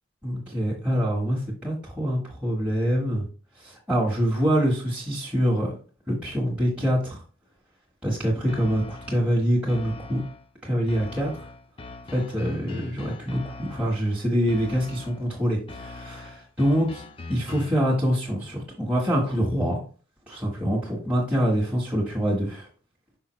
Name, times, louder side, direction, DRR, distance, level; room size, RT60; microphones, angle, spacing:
voice 1, 0.2-3.2 3.6-5.7 6.1-7.2 8.0-10.2 10.6-11.3 12.1-16.9 17.3-19.8 20.3-22.7, equal, 5° right, -6 dB, 1.3 m, -25 dB
sound 1, 8.5-9.3 9.7-10.5 10.9-14.1 14.5-15.3 15.7-17.9, left 3 dB, 25° left, 0.4 m, -41 dB
5.6 x 5.3 x 3.1 m, 0.39 s
head